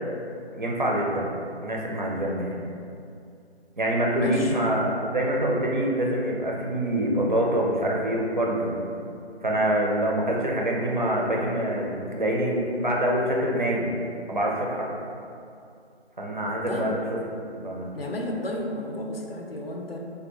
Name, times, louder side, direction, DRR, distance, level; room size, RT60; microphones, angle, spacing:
voice 1, 0.5-1.3 1.6-2.6 3.8-8.8 9.4-13.9 14.3-14.9 16.2-16.9 17.3-17.9, right 1 dB, 45° right, -2 dB, 0.4 m, -25 dB
voice 2, 4.2-4.6 16.7-17.0 17.9-20.0, left 1 dB, 60° left, 1 dB, 0.5 m, -32 dB
3.2 x 2.3 x 3.0 m, 2.4 s
figure-of-eight pair, 155°, 34 cm